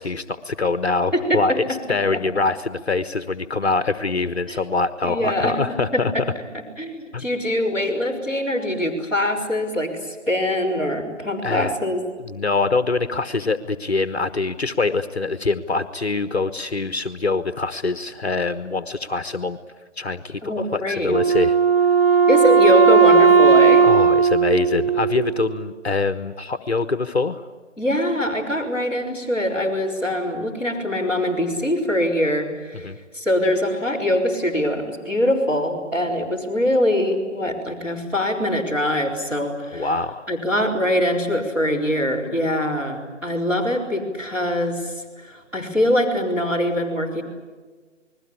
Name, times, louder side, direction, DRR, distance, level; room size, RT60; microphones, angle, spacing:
voice 1, 0.0-6.1 7.1-7.2 11.4-11.7 12.2-19.6 20.0-20.4 20.7-21.6 23.8-27.5 32.8-33.0 39.7-40.3, left 3 dB, 55° left, 12 dB, 1.3 m, -24 dB
voice 2, 1.1-1.8 2.1-2.2 4.5-4.6 5.0-6.2 6.8-12.0 20.4-21.1 22.3-23.9 27.8-39.9 40.3-47.2, left 1 dB, 5° right, -9 dB, 4.2 m, -23 dB
Wind instrument woodwind instrument, 21.1-25.6, right 5 dB, 50° right, 0.9 m, -16 dB
29.0 x 21.0 x 8.5 m, 1.4 s
figure-of-eight pair, 150°, 38 cm